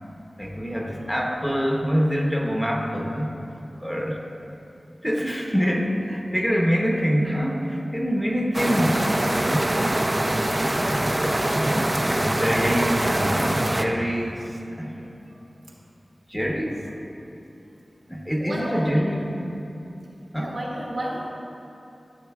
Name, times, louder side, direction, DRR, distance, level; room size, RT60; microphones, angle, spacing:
voice 1, 0.4-3.3 3.8-4.3 5.0-10.0 10.6-11.1 12.0-15.1 16.3-16.9 18.1-19.6 20.3-20.6, equal, 5° left, -1 dB, 0.9 m, -25 dB
sound 1, 8.5-13.8, right 1 dB, 30° right, 0.4 m, -23 dB
voice 2, 18.4-18.9 20.4-21.3, right 1 dB, 85° right, -5 dB, 1.5 m, -31 dB
12.0 x 6.8 x 2.3 m, 2.8 s
wide cardioid pair, 65°, 0 cm